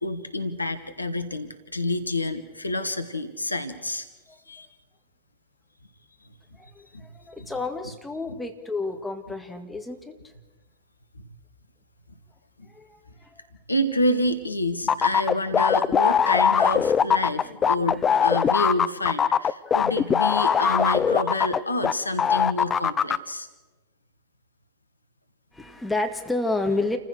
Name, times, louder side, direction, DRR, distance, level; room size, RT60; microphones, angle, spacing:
voice 1, 0.0-4.1 4.5-4.7 6.9-7.0 13.7-23.5, left 1 dB, 80° left, 10 dB, 1.3 m, -28 dB
voice 2, 6.5-10.2 12.6-13.4 17.4-17.5 17.9-18.1 18.4-18.6 19.6-20.0 25.5-27.0, left 2 dB, 5° left, 4 dB, 2.1 m, -31 dB
sound 1, 14.9-21.9 22.2-23.2, left 7 dB, 20° left, 0.6 m, -21 dB
28.5 x 15.0 x 6.5 m, 1.2 s
figure-of-eight pair, 90°, 0 cm